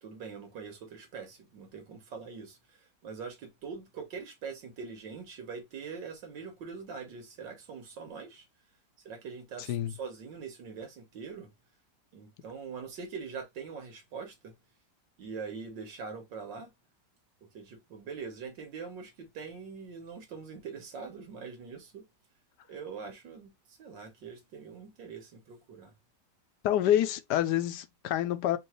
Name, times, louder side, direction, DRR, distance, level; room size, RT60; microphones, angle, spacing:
voice 1, 0.0-8.5 9.1-11.5 12.1-14.5 15.2-16.7 17.5-22.0 22.7-23.5 23.8-25.9, right 5 dB, 90° right, 2.0 m, -43 dB
voice 2, 26.6-28.6, left 11 dB, 75° left, 1.1 m, -27 dB
4.6 x 2.8 x 3.0 m
omnidirectional pair, 1.9 m